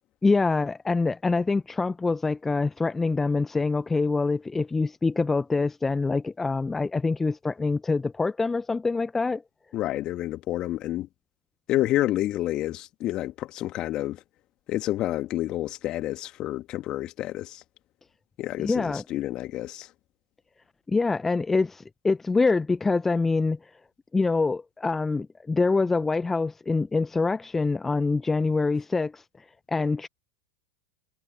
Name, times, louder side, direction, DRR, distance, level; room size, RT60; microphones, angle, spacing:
voice 1, 0.2-9.4 18.6-19.0 20.9-23.6 24.1-29.2 29.7-30.1, left 3 dB, 15° left, 0.9 m, -25 dB
voice 2, 9.7-11.1 11.7-14.2 14.7-17.6 18.4-19.9, left 15 dB, 40° left, 2.9 m, -29 dB
figure-of-eight pair, 90°, 2 cm